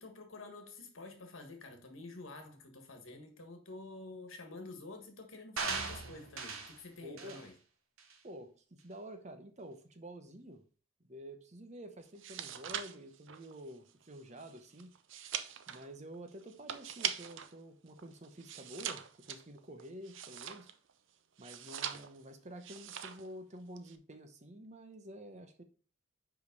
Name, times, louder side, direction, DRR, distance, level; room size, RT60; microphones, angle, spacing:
voice 1, 0.0-7.5, left 2 dB, 75° left, 1.6 m, -49 dB
sound 1, 5.6-6.8 7.2-7.4 8.0-8.1, right 4 dB, 90° right, 1.2 m, -38 dB
voice 2, 7.0-7.4 8.2-10.6 11.0-15.0 15.7-20.7 21.4-25.6, equal, 35° right, 0.8 m, -49 dB
sound 2, 12.1-17.5 17.9-20.9 21.4-22.3 22.6-23.3 23.6-24.0, right 9 dB, 65° right, 0.6 m, -42 dB
5.1 x 5.1 x 5.3 m
head